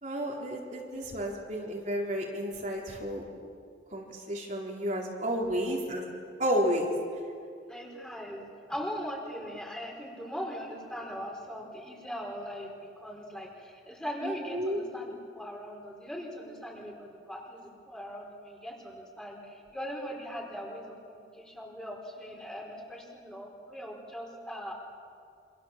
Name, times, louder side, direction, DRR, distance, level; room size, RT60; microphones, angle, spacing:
voice 1, 0.0-3.2 3.9-6.0 6.4-6.9 14.2-14.8, equal, 45° right, -2 dB, 4.1 m, -31 dB
voice 2, 7.7-12.7 13.0-24.7, equal, 5° left, -1 dB, 4.8 m, -40 dB
28.5 x 26.5 x 7.5 m, 2.3 s
head